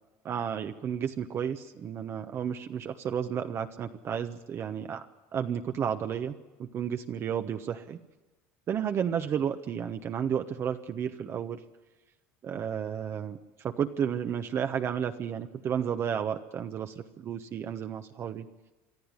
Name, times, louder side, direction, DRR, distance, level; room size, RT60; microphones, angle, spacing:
voice 1, 0.2-5.1 5.3-6.3 6.6-8.0 8.7-11.6 12.4-18.5, right 8 dB, 40° right, 7 dB, 1.1 m, -32 dB
24.5 x 13.0 x 9.8 m, 1.1 s
supercardioid pair, 105°, 6 cm